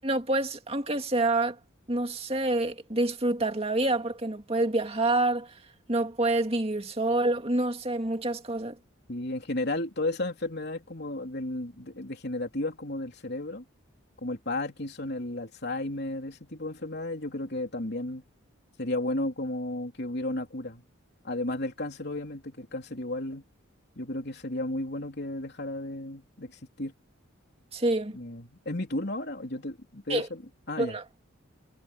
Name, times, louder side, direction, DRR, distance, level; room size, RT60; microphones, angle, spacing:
voice 1, 0.0-1.6 1.9-5.5 5.9-8.8 27.7-28.2 30.1-30.3 30.8-31.0, right 2 dB, 30° right, 2.2 m, -27 dB
voice 2, 9.1-13.6 14.2-18.2 18.8-20.8 21.2-23.4 24.0-26.9 28.1-30.4 30.7-31.0, left 2 dB, 50° left, 3.7 m, -33 dB
head